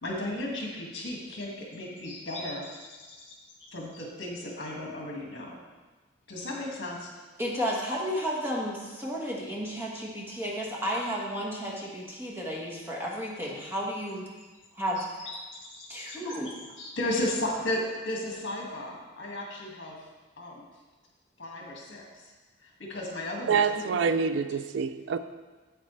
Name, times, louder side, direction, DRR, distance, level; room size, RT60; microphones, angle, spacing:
voice 1, 0.0-5.6 6.3-7.1 15.0-16.2 16.4-20.0 20.4-20.6 21.4-22.3 22.6-23.6 23.9-24.1, left 1 dB, 60° left, -2 dB, 2.0 m, -35 dB
voice 2, 7.4-14.3 14.7-15.0 15.9-16.6, equal, 10° right, -4 dB, 1.4 m, -32 dB
voice 3, 23.5-25.2, right 5 dB, 65° right, 11 dB, 0.4 m, -26 dB
9.1 x 8.6 x 3.3 m, 1.3 s
head